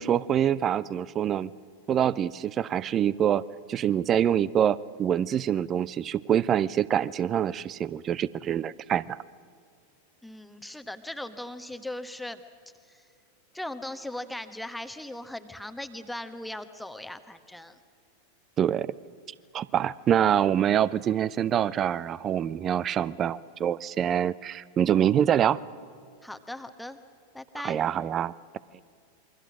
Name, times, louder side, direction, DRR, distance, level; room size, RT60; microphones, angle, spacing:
voice 1, 0.0-1.5 1.9-3.4 3.7-9.2 18.6-18.9 19.5-25.6 27.6-28.3, right 9 dB, 30° right, 20 dB, 0.6 m, -25 dB
voice 2, 10.2-12.4 12.9-13.0 13.5-17.8 26.2-27.0 27.3-27.8, left 1 dB, 5° left, 9 dB, 1.1 m, -38 dB
28.0 x 23.5 x 6.2 m, 2.2 s
figure-of-eight pair, 90°, 0 cm